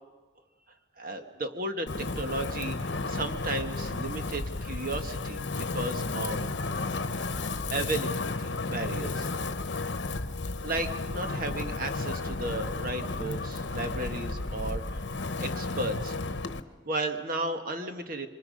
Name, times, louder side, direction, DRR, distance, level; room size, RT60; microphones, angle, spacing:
voice 1, 1.0-2.8 3.1-6.5 7.7-9.3 9.8-9.9 10.4-15.0 15.4-16.4 16.8-18.3, right 2 dB, 50° right, 7 dB, 1.6 m, -34 dB
Wind, 1.9-16.6, left 3 dB, 75° left, 1.0 m, -33 dB
27.5 x 24.5 x 5.3 m, 1.3 s
head